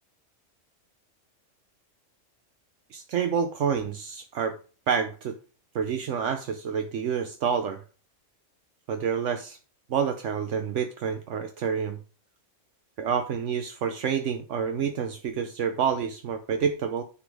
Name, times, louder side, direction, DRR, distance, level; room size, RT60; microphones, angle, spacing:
voice 1, 2.9-4.5 4.9-5.3 5.7-7.8 8.9-9.6 9.9-12.0 13.0-17.0, right 7 dB, 75° right, 7 dB, 1.1 m, -28 dB
10.0 x 5.2 x 4.8 m, 0.37 s
omnidirectional pair, 1.3 m